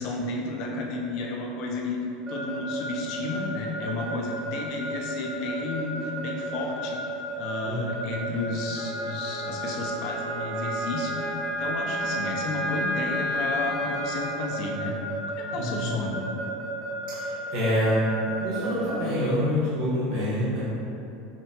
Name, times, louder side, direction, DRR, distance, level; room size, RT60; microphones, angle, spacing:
voice 1, 0.0-2.0 2.3-7.0 7.3-15.0 15.4-16.2, left 3 dB, 45° left, 0 dB, 0.5 m, -32 dB
Keyboard (musical) / Alarm, 2.3-18.9, right 2 dB, 15° right, 0.4 m, -34 dB
Wind instrument woodwind instrument, 8.7-14.4, equal, ahead, 0.8 m, -32 dB
voice 2, 15.6-15.9 17.1-18.0 18.3-20.6, equal, 50° right, -10 dB, 1.1 m, -26 dB
5.7 x 2.1 x 2.8 m, 2.8 s
supercardioid pair, 170°, 0 cm